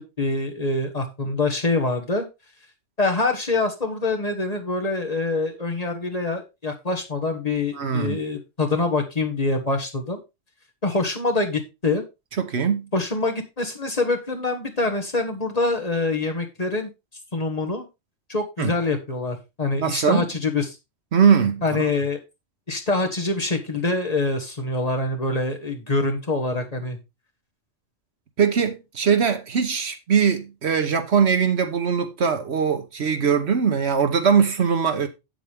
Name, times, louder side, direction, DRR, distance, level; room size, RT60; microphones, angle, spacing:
voice 1, 0.0-2.3 3.0-10.2 10.8-12.0 12.9-16.9 17.3-17.8 18.3-20.8 21.6-22.2 22.7-27.0, left 3 dB, 30° left, 1.4 m, -25 dB
voice 2, 7.7-8.2 12.4-12.9 18.6-18.7 19.8-20.2 21.1-21.8 28.4-35.1, right 6 dB, 60° right, 1.2 m, -21 dB
8.2 x 7.6 x 3.4 m
omnidirectional pair, 1.3 m